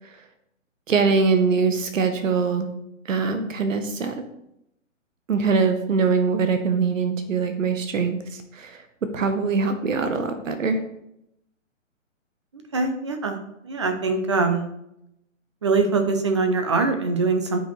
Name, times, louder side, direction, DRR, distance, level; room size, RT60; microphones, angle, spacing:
voice 1, 0.9-2.7 3.1-4.1 5.3-8.8 9.1-10.8, right 5 dB, 75° right, 8 dB, 1.1 m, -23 dB
voice 2, 12.7-13.4 13.6-14.6 15.6-17.6, right 4 dB, 25° right, 6 dB, 0.5 m, -22 dB
8.8 x 5.1 x 3.3 m, 0.79 s
hypercardioid pair, 150°, 39 cm